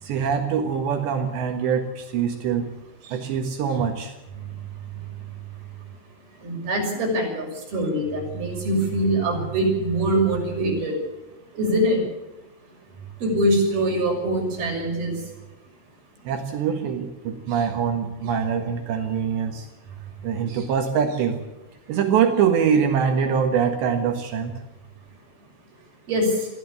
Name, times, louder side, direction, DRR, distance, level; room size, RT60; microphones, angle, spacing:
voice 1, 0.0-2.7 3.0-4.1 16.3-19.7 20.2-21.4 21.9-24.5, right 7 dB, 70° right, 5 dB, 3.6 m, -24 dB
voice 2, 6.4-11.0 11.5-12.0 13.2-15.2 26.1-26.5, right 1 dB, 50° right, 1 dB, 8.1 m, -23 dB
22.5 x 15.5 x 8.4 m, 0.99 s
omnidirectional pair, 5.5 m